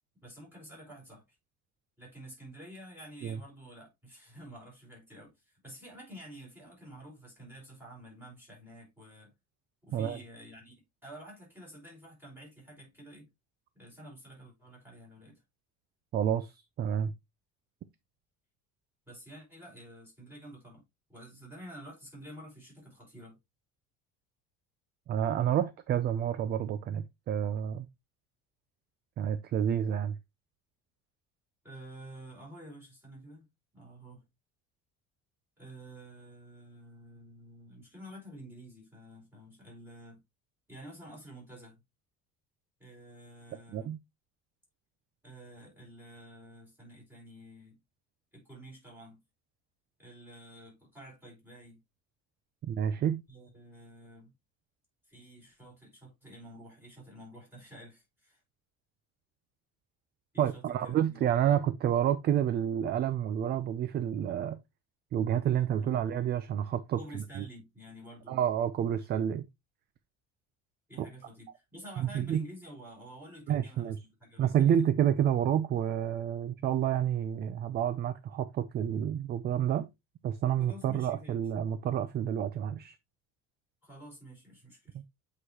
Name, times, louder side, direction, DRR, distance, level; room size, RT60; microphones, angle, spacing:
voice 1, 0.2-1.4 2.0-9.3 9.8-13.3 13.7-15.4 19.1-20.8 21.1-23.4 31.6-33.5 33.7-34.2 35.6-40.2 40.7-41.8 42.8-43.9 45.2-47.7 48.3-49.2 50.0-51.8 53.3-54.3 55.1-58.4 60.3-61.2 65.8-66.1 67.0-68.5 70.9-74.7 80.6-81.4 83.8-85.0, right 1 dB, 5° right, 4.9 m, -50 dB
voice 2, 16.1-17.1 25.1-27.9 29.2-30.1 43.7-44.0 52.6-53.2 60.4-64.6 65.1-67.4 68.3-69.4 71.0-71.1 72.0-72.4 73.5-74.0 74.4-79.9 80.2-83.0 84.9-85.1, right 10 dB, 35° right, 0.5 m, -29 dB
8.2 x 4.9 x 2.8 m
cardioid pair, 165°, 30 cm